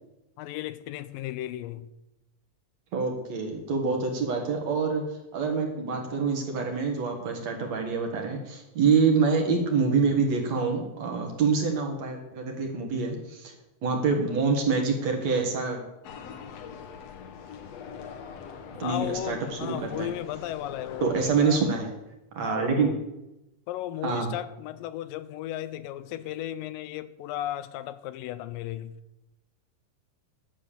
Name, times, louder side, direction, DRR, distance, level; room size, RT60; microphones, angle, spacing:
voice 1, 0.4-1.9 18.8-21.6 22.4-23.0 23.7-29.0, left 13 dB, 85° left, 2.3 m, -35 dB
voice 2, 2.9-13.5 13.8-15.8 18.8-20.1 21.0-21.9 22.3-22.9 24.0-24.3, right 5 dB, 55° right, 2.9 m, -26 dB
sound 1, 16.0-21.8, left 6 dB, 65° left, 1.9 m, -42 dB
11.5 x 8.3 x 7.0 m
omnidirectional pair, 4.0 m